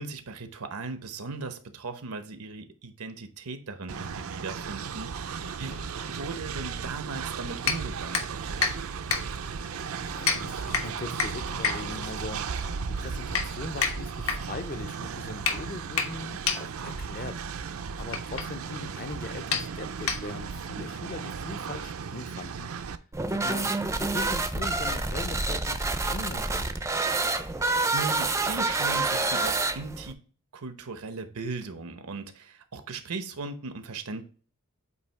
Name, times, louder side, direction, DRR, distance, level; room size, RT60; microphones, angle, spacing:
voice 1, 0.0-5.8 6.1-8.7 27.4-30.2 30.5-34.2, right 3 dB, 90° right, 0.9 m, -38 dB
Train, 3.9-23.0, right 6 dB, 70° right, 0.5 m, -36 dB
voice 2, 5.4-5.9 9.4-9.7 10.0-17.4 18.0-22.7 23.3-26.7, left 3 dB, 40° left, 0.6 m, -40 dB
sound 1, 7.6-20.6, left 5 dB, 70° left, 1.0 m, -32 dB
sound 2, 23.1-30.1, right 3 dB, 15° right, 0.4 m, -28 dB
8.3 x 2.8 x 4.5 m
head